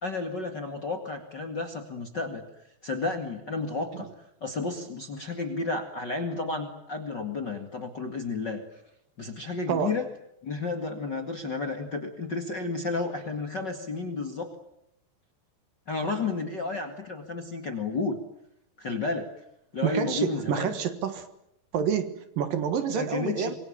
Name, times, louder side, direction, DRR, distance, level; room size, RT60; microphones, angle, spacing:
voice 1, 0.0-2.4 2.8-4.1 4.4-8.6 9.2-10.1 10.4-14.5 15.9-18.2 18.8-19.3 19.7-20.7 22.9-23.5, left 3 dB, 40° left, 5 dB, 1.8 m, -32 dB
voice 2, 19.8-21.3 21.7-23.5, right 8 dB, 65° right, 10 dB, 3.0 m, -28 dB
26.0 x 23.0 x 8.8 m, 0.77 s
omnidirectional pair, 4.7 m